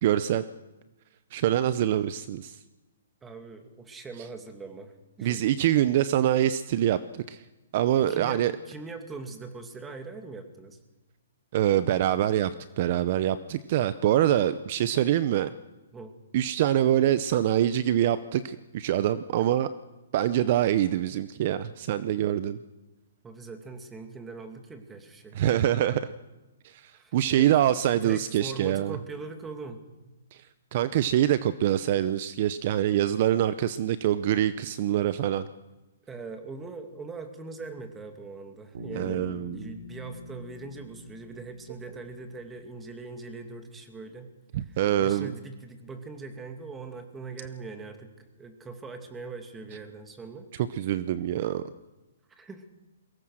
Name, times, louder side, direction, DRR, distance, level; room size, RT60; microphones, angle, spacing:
voice 1, 0.0-0.4 1.3-2.6 5.2-7.4 7.7-8.5 11.5-12.5 12.8-15.5 16.3-19.7 20.1-22.6 25.3-26.1 26.6-29.0 30.3-30.4 30.7-35.5 39.0-39.7 44.5-45.3 50.7-51.6, right 11 dB, 45° right, 14 dB, 0.7 m, -25 dB
voice 2, 3.2-5.5 8.1-10.8 15.9-16.2 23.2-25.4 26.9-29.8 36.1-39.3 39.5-50.5 52.3-52.6, right 4 dB, 10° right, 5 dB, 2.3 m, -41 dB
Bass guitar, 38.7-42.6, left 2 dB, 65° right, 3.2 m, -43 dB
22.5 x 18.5 x 6.4 m, 1.1 s
hypercardioid pair, 145°, 0 cm